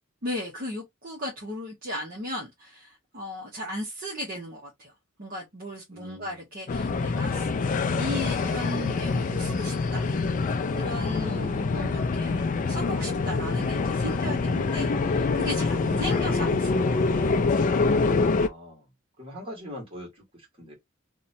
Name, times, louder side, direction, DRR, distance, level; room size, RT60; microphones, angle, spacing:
voice 1, 0.2-4.9 5.2-10.1 10.7-17.3, left 1 dB, 45° right, 0.8 m, -36 dB
voice 2, 5.9-6.4 11.1-11.5 18.3-18.9 19.2-20.2 20.6-20.7, left 1 dB, 25° right, 1.5 m, -42 dB
sound 1, 6.7-18.5, left 4 dB, 40° left, 0.3 m, -25 dB
2.8 x 2.2 x 2.5 m
head